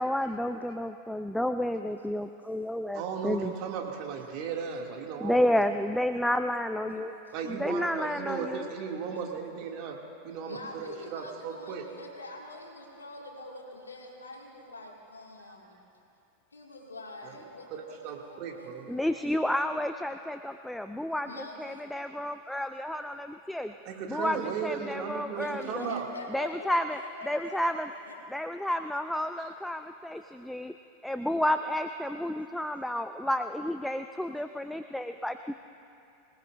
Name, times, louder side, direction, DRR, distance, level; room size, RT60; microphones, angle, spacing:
voice 1, 0.0-3.5 5.2-7.1 7.5-8.6 18.9-21.3 21.6-23.7 24.1-25.9 26.3-27.0 27.3-27.9 28.3-30.7 31.0-35.5, left 1 dB, 5° left, 8 dB, 0.5 m, -31 dB
voice 2, 1.6-2.3 3.9-4.5 6.8-7.6 8.8-9.0 9.4-9.5 10.5-15.8 16.5-19.3 21.2-21.9 22.4-22.5 23.1-23.6 24.2-24.7 25.4-28.2 30.1-30.3, left 2 dB, 90° left, -1 dB, 2.1 m, -46 dB
voice 3, 2.9-5.6 7.3-10.0 10.2-11.8 17.2-17.3 17.7-18.8 23.8-26.1 29.4-29.5, right 7 dB, 50° right, 0 dB, 2.4 m, -36 dB
26.0 x 19.0 x 2.6 m, 2.7 s
hypercardioid pair, 90°, 0 cm